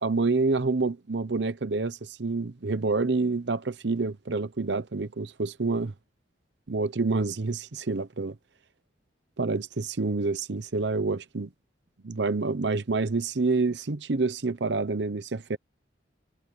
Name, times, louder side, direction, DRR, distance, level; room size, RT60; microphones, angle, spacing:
voice 1, 0.0-5.9 6.7-8.3 9.4-11.5 12.0-15.6, right 3 dB, 65° right, 0.8 m, -27 dB
head